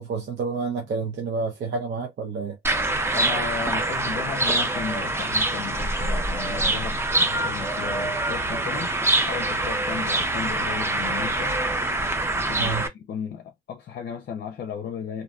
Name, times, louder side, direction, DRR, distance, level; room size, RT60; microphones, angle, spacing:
voice 1, 0.0-2.6 12.6-12.8, right 4 dB, 60° right, 0.8 m, -29 dB
sound 1, 2.6-12.9, right 2 dB, 10° right, 0.5 m, -25 dB
voice 2, 3.1-8.9 9.2-11.6 12.4-15.2, left 7 dB, 55° left, 0.5 m, -34 dB
2.6 x 2.5 x 2.3 m
cardioid pair, 90°, 20 cm